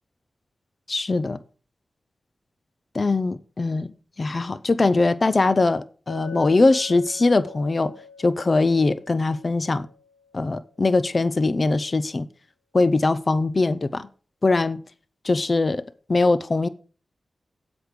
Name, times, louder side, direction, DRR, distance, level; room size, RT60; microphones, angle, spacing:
voice 1, 0.9-1.4 2.9-3.9 4.2-7.9 8.2-9.9 10.3-12.3 12.7-14.1 14.4-14.8 15.2-15.8 16.1-16.7, left 3 dB, 45° left, 0.6 m, -21 dB
Chink clink, 6.1-10.5, left 5 dB, 75° left, 1.2 m, -44 dB
7.9 x 5.3 x 6.7 m
cardioid pair, 45°, 0 cm